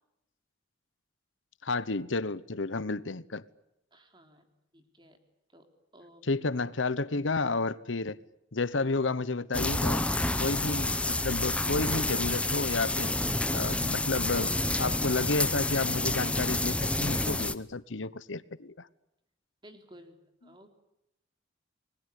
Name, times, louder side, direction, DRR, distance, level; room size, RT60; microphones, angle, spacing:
voice 1, 1.6-3.4 6.2-8.2 8.5-10.1 10.4-13.1 13.5-14.5 14.8-18.9, left 3 dB, 80° left, 1.0 m, -31 dB
voice 2, 3.9-4.5 4.7-5.2 5.5-5.6 5.9-6.3 19.6-20.7, equal, 25° right, 3.7 m, -55 dB
sound 1, 9.5-17.5, left 2 dB, 5° left, 0.9 m, -29 dB
29.5 x 21.0 x 8.4 m
head